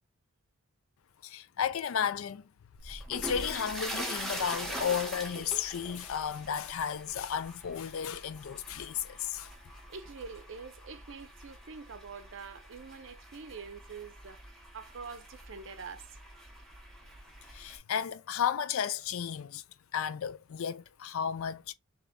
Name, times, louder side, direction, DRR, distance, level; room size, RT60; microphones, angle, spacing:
voice 1, 1.2-2.5 2.8-9.5 17.5-19.6 19.9-21.7, left 8 dB, 70° left, 0.4 m, -33 dB
sound 1, 2.8-17.8, equal, ahead, 0.8 m, -43 dB
voice 2, 9.9-14.4 14.7-16.2, right 5 dB, 55° right, 0.5 m, -45 dB
3.4 x 2.9 x 3.7 m
head